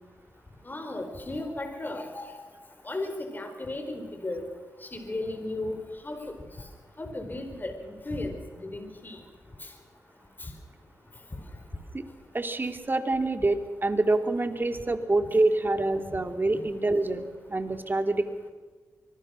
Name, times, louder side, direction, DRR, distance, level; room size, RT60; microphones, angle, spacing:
voice 1, 0.6-2.4 2.8-4.4 4.8-5.8 6.0-6.3 7.0-9.2 9.6-9.7 10.4-10.5 16.5-16.6, left 2 dB, 30° left, 6 dB, 4.5 m, -35 dB
voice 2, 12.3-18.3, right 2 dB, 30° right, 7 dB, 2.8 m, -26 dB
24.5 x 20.5 x 6.4 m, 1.4 s
cardioid pair, 50°, 6 cm